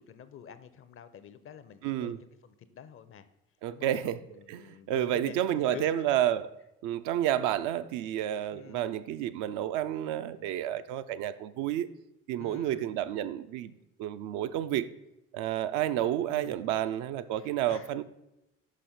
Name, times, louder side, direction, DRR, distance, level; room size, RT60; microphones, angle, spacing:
voice 1, 0.0-3.3 3.7-3.9 4.3-5.9 8.5-8.9 12.4-12.8 16.3-16.5 17.4-18.0, left 8 dB, 35° left, 13 dB, 0.5 m, -48 dB
voice 2, 1.8-2.2 3.6-6.5 6.8-11.9 12.3-13.7 14.0-14.9 15.3-18.0, right 11 dB, 60° right, 11 dB, 0.4 m, -30 dB
5.5 x 5.1 x 4.2 m, 0.89 s
hypercardioid pair, 55°, 37 cm